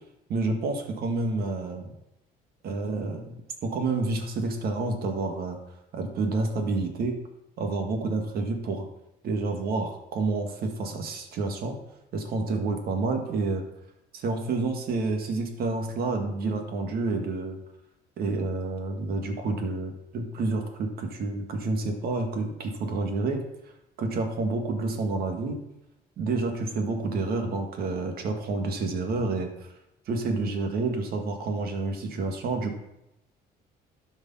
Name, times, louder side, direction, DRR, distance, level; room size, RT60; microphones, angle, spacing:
voice 1, 0.3-1.9 2.6-3.3 3.6-5.6 5.9-7.2 7.6-8.9 9.2-11.8 12.1-13.6 14.1-17.6 18.2-23.4 24.0-25.6 26.2-29.7 30.1-32.8, right 3 dB, 65° right, 4 dB, 1.9 m, -29 dB
12.5 x 5.2 x 5.5 m, 0.88 s
cardioid pair, 110°, 17 cm